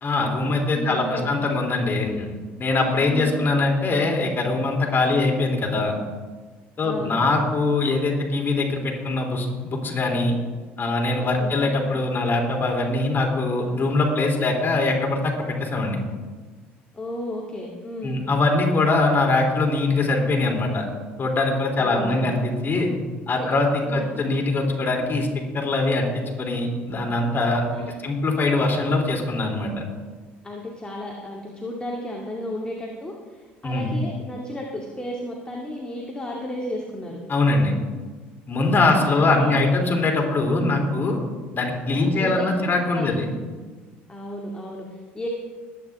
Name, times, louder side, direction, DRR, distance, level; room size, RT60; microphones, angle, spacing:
voice 1, 0.0-2.1 2.6-6.0 6.8-10.3 10.8-16.0 18.0-20.8 21.2-22.9 23.3-25.3 25.5-27.6 28.0-29.7 33.6-33.9 37.3-37.8 38.5-41.2 41.5-43.2, left 2 dB, 35° left, 1 dB, 3.6 m, -22 dB
voice 2, 0.7-1.3 2.1-2.3 3.0-3.4 4.9-5.3 6.8-7.2 11.2-11.6 16.9-18.2 21.8-22.3 23.3-23.5 23.8-24.2 27.7-28.1 30.4-37.2 38.9-39.6 40.5-40.9 41.9-43.3 44.1-45.3, left 1 dB, 15° left, -2 dB, 2.4 m, -33 dB
21.0 x 9.6 x 3.7 m, 1.4 s
hypercardioid pair, 70°, 6 cm